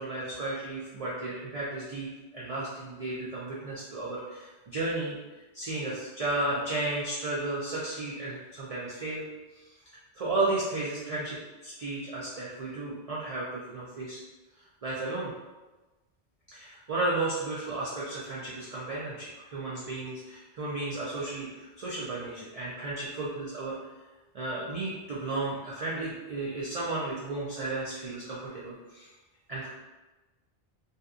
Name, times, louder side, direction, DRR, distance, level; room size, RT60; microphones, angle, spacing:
voice 1, 0.0-5.2 5.5-9.2 9.5-9.7 10.1-11.4 11.6-14.2 14.8-15.3 16.5-23.7 24.3-29.1 29.5-29.7, right 2 dB, 55° right, -7 dB, 0.4 m, -33 dB
2.7 x 2.2 x 2.4 m, 1.2 s
omnidirectional pair, 1.1 m